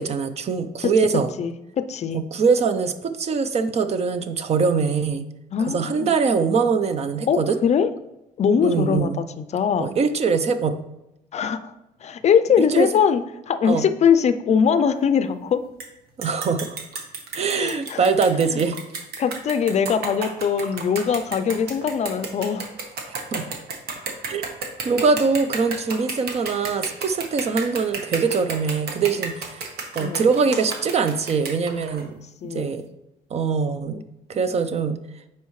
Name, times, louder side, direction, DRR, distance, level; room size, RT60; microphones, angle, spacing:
voice 1, 0.0-1.3 2.1-5.3 5.7-7.6 8.6-9.2 9.8-10.9 12.6-12.9 13.6-13.9 16.2-16.8 17.3-18.8 23.3-23.4 24.3-24.4 24.8-29.7 29.9-32.8 33.3-34.0 34.3-35.0, right 5 dB, 40° right, 11 dB, 0.6 m, -23 dB
voice 2, 1.4-2.2 5.5-6.1 7.3-7.9 8.4-9.9 11.3-11.7 12.0-15.6 17.5-18.0 18.5-18.6 19.2-22.7 30.0-30.2 32.4-32.8, left 7 dB, 40° left, 11 dB, 0.5 m, -22 dB
sound 1, 15.8-15.9 16.2-32.0, right 4 dB, 65° right, 1.3 m, -32 dB
9.2 x 4.4 x 3.1 m, 0.90 s
cardioid pair, 110°, 17 cm